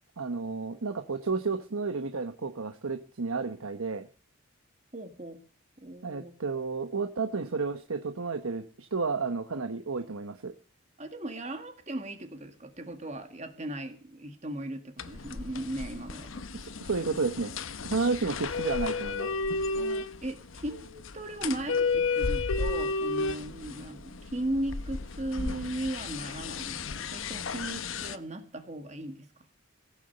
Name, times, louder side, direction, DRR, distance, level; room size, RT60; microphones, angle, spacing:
voice 1, 0.2-4.1 6.0-10.5 16.5-17.5 17.8-19.3, right 4 dB, 85° right, 8 dB, 1.0 m, -31 dB
voice 2, 4.9-5.4 5.8-6.3 11.0-16.3 17.9-18.2 19.7-29.3, right 1 dB, 30° right, 8 dB, 1.6 m, -37 dB
sound 1, 15.0-28.2, left 4 dB, 70° left, 0.9 m, -33 dB
17.0 x 8.5 x 6.7 m, 0.38 s
head